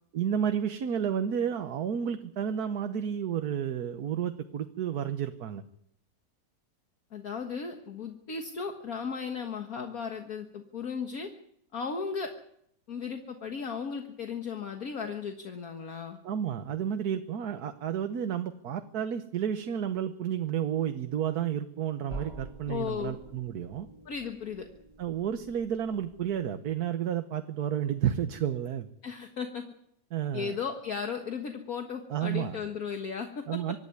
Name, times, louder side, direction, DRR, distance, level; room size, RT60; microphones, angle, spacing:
voice 1, 0.1-5.6 16.2-23.9 25.0-28.9 30.1-30.6 32.1-32.6 33.5-33.8, right 9 dB, 65° right, 8 dB, 1.5 m, -31 dB
voice 2, 7.1-11.3 11.7-12.3 12.9-16.2 22.7-23.2 24.1-24.7 29.0-29.6 30.3-33.4, left 6 dB, 55° left, 4 dB, 2.0 m, -35 dB
sound 1, 22.1-26.8, right 2 dB, 15° right, 1.8 m, -47 dB
25.0 x 12.0 x 9.6 m, 0.73 s
omnidirectional pair, 1.9 m